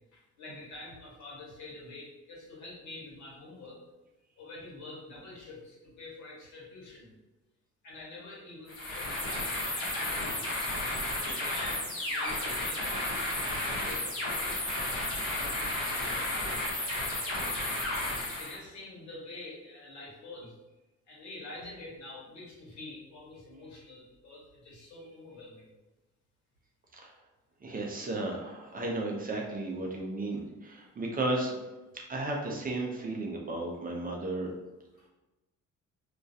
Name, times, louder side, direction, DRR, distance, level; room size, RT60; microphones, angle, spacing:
voice 1, 0.1-3.8 4.4-7.1 7.8-10.5 11.3-17.6 18.4-20.6 21.1-25.7, left 2 dB, 70° left, -5 dB, 1.2 m, -47 dB
sound 1, 8.7-18.6, left 1 dB, 45° left, 1.0 m, -33 dB
voice 2, 27.6-31.6 32.1-34.5, right 2 dB, 30° right, 0 dB, 0.5 m, -34 dB
2.3 x 2.2 x 2.6 m, 1.1 s
cardioid pair, 90°, 30 cm